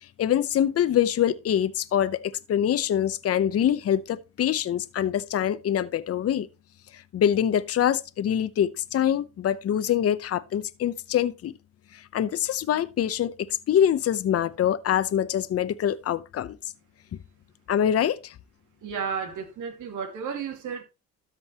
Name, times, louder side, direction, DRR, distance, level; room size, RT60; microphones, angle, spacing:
voice 1, 0.2-6.5 6.9-11.5 11.9-13.4 13.7-16.6 17.7-18.3, left 10 dB, 50° left, 0.7 m, -24 dB
voice 2, 18.8-20.8, right 6 dB, 80° right, 2.6 m, -32 dB
13.0 x 5.3 x 2.9 m
cardioid pair, 90°, 30 cm